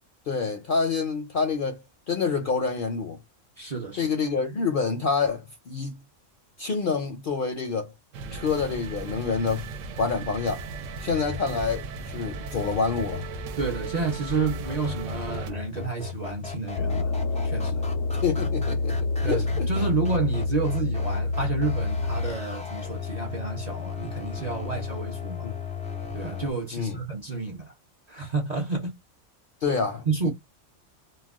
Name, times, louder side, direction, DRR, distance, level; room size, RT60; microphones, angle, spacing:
voice 1, 0.3-3.2 3.9-6.0 6.6-7.9 8.3-9.7 10.0-10.6 11.0-13.2 18.2-19.9 25.4-25.5 26.7-27.0 29.6-30.3, left 5 dB, 60° left, 0.6 m, -27 dB
voice 2, 3.6-4.1 13.6-17.1 17.4-17.8 19.2-25.5 26.1-27.7 28.1-28.9 30.1-30.3, right 4 dB, 45° right, 0.5 m, -30 dB
sound 1, 8.1-15.5, right 4 dB, 75° right, 0.9 m, -37 dB
sound 2, 11.1-26.5, left 6 dB, 10° left, 0.3 m, -37 dB
sound 3, 16.8-22.3, left 3 dB, 80° left, 0.9 m, -27 dB
2.3 x 2.2 x 3.4 m
omnidirectional pair, 1.3 m